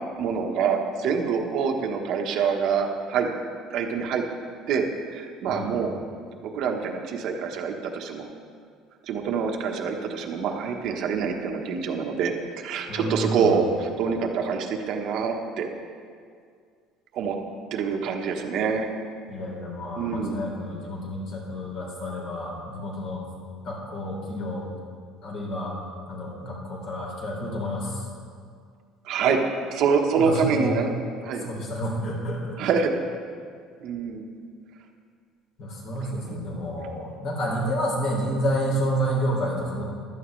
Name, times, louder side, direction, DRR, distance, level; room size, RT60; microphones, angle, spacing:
voice 1, 0.2-3.3 3.7-4.2 4.7-5.9 6.5-8.3 9.1-15.7 17.1-17.4 17.7-18.9 20.0-20.4 29.0-29.4 29.7-30.9 31.2-31.5 32.6-32.9 33.8-34.2 36.3-36.4, right 6 dB, 55° right, 3 dB, 1.2 m, -26 dB
voice 2, 12.9-13.6 19.3-23.2 23.6-24.7 25.2-25.7 26.1-28.0 30.2-30.8 31.4-32.6 35.6-39.8, equal, 55° left, -3 dB, 3.7 m, -29 dB
15.0 x 12.0 x 3.2 m, 2.1 s
cardioid pair, 155°, 0 cm